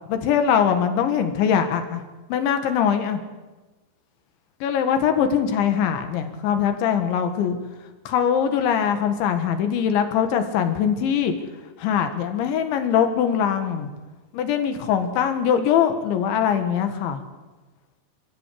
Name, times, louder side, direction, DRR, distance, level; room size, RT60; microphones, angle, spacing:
voice 1, 0.1-2.0 2.3-3.2 4.6-7.6 8.1-11.3 11.8-13.9 14.3-17.2, left 8 dB, 75° left, 7 dB, 3.9 m, -22 dB
26.5 x 16.0 x 8.5 m, 1.2 s
omnidirectional pair, 5.5 m